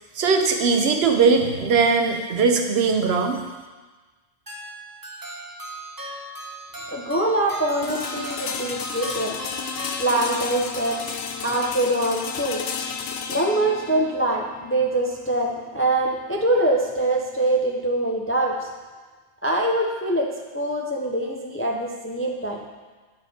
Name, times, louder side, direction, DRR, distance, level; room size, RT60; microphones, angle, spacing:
voice 1, 0.2-3.4, right 4 dB, 65° right, 4 dB, 0.9 m, -20 dB
sound 1, 4.5-10.6, right 1 dB, 20° right, 0.8 m, -37 dB
voice 2, 6.9-9.4 10.0-11.1 11.4-12.7 13.3-18.7 19.4-22.6, right 1 dB, 20° left, 0 dB, 0.4 m, -24 dB
sound 2, 7.8-17.7, left 6 dB, 75° left, 0.8 m, -33 dB
9.5 x 4.7 x 4.2 m, 1.3 s
omnidirectional pair, 1.1 m